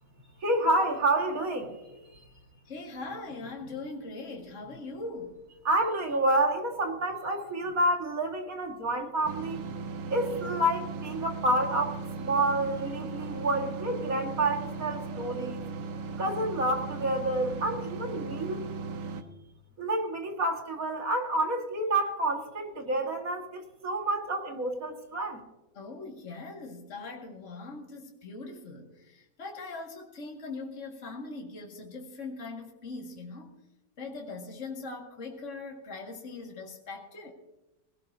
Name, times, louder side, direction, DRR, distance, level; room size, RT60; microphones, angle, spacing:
voice 1, 0.4-1.8 5.6-9.6 10.1-15.6 16.2-18.7 19.8-25.4, right 1 dB, 50° right, 2 dB, 2.3 m, -29 dB
voice 2, 2.7-5.4 25.7-33.5 34.0-37.3, left 3 dB, 45° left, -1 dB, 2.2 m, -41 dB
sound 1, 9.2-19.2, right 4 dB, 80° right, 1.7 m, -37 dB
19.5 x 16.5 x 2.7 m, 1.0 s
omnidirectional pair, 1.9 m